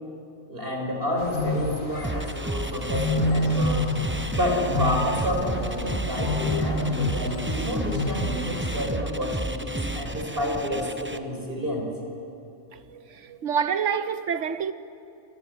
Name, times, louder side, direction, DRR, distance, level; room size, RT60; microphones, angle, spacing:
voice 1, 0.5-3.9 4.3-11.9, equal, 45° right, 6.0 m, -29 dB
sound 1, 1.2-8.9, left 2 dB, 85° left, 2.7 m, -29 dB
sound 2, 2.0-11.2, right 1 dB, 10° right, 0.9 m, -31 dB
voice 2, 12.7-14.7, right 7 dB, 70° right, 1.3 m, -28 dB
27.5 x 21.0 x 9.6 m
omnidirectional pair, 1.3 m